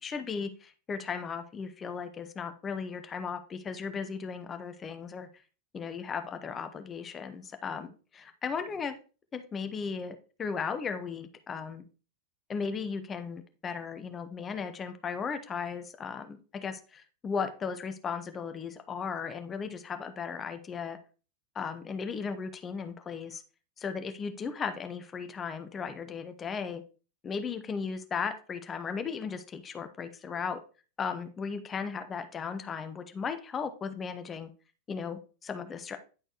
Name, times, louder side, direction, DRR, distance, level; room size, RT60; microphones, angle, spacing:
voice 1, 0.0-5.3 5.7-8.9 9.3-11.8 12.5-21.0 21.5-23.4 23.8-26.8 27.2-30.6 31.0-34.5 34.9-36.0, left 6 dB, 20° left, 9 dB, 0.7 m, -36 dB
10.0 x 4.4 x 2.9 m, 0.36 s
figure-of-eight pair, 90°, 0 cm